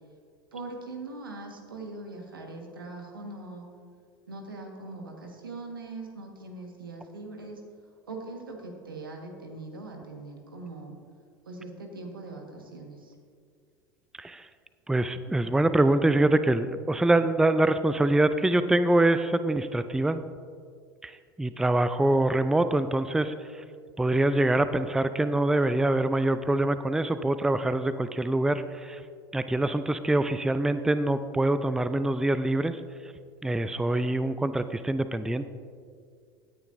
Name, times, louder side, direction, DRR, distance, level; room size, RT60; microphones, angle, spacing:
voice 1, 0.5-3.7 4.3-7.6 8.1-10.9 11.4-13.1, right 2 dB, 85° right, 2 dB, 1.5 m, -41 dB
voice 2, 14.9-20.2 21.0-21.1 21.4-23.6 24.0-29.0 29.3-32.8 33.4-35.5, right 2 dB, 5° right, 12 dB, 0.4 m, -24 dB
16.5 x 9.7 x 2.6 m, 2.2 s
figure-of-eight pair, 75°, 11 cm